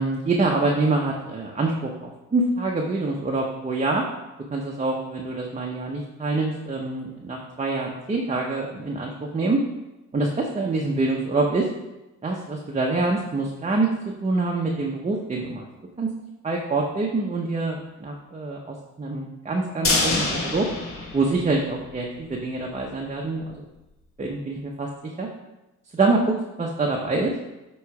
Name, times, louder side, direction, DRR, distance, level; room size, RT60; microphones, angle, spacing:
voice 1, 0.0-4.1 4.5-9.6 10.1-11.7 12.2-13.9 14.2-15.7 16.0-16.1 16.4-20.7 21.1-23.6 24.2-24.9 25.2-25.3 25.9-27.3, right 3 dB, 25° right, -1 dB, 0.8 m, -25 dB
sound 1, 19.8-22.0 22.3-22.4 22.8-22.9, left 2 dB, 45° left, 1.4 m, -26 dB
7.9 x 3.1 x 4.8 m, 1.0 s
cardioid pair, 90°, 30 cm